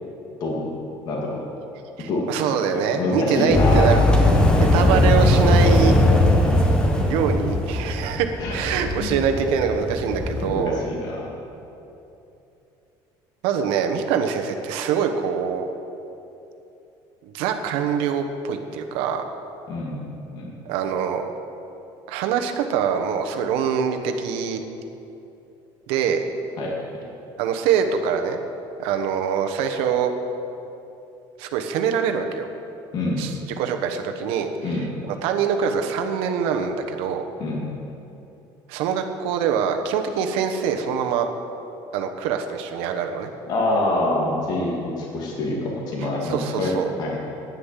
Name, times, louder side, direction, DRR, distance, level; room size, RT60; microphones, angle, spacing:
voice 1, 1.1-1.4 2.1-2.3 2.7-3.9 8.4-8.5 9.0-9.2 10.4-11.3 19.7-20.5 26.6-26.7 32.9-33.3 34.6-34.9 37.4-37.7 43.5-46.7 47.0-47.2, left 2 dB, 45° left, -2 dB, 2.3 m, -25 dB
voice 2, 2.0-6.0 6.6-6.7 7.1-10.8 13.4-15.7 17.3-19.2 20.6-21.3 22.1-24.6 25.9-26.2 27.4-28.4 28.8-30.1 31.4-32.5 33.2-37.2 38.7-41.3 41.9-43.3 46.2-46.9, right 7 dB, 85° right, 5 dB, 1.1 m, -24 dB
sound 1, 3.5-10.5, left 1 dB, 10° left, 1.0 m, -19 dB
10.5 x 9.9 x 7.5 m, 2.9 s
cardioid pair, 165°, 9 cm